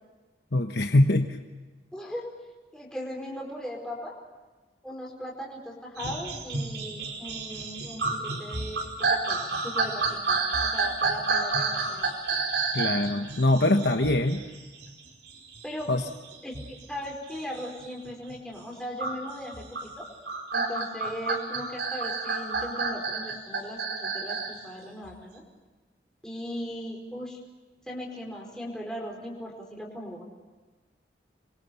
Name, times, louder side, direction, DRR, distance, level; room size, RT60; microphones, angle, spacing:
voice 1, 0.5-1.4 12.7-14.4 15.9-16.0, left 1 dB, 65° left, 5 dB, 1.2 m, -23 dB
voice 2, 1.9-2.3 2.7-4.2 4.8-12.1 15.6-16.0 16.4-20.1 20.5-25.4 26.2-27.4 27.9-30.2, equal, 5° left, -2 dB, 4.6 m, -38 dB
sound 1, 6.0-18.4 19.0-24.6 25.1-25.2, right 4 dB, 75° right, 5.0 m, -30 dB
27.0 x 23.5 x 7.0 m, 1.3 s
head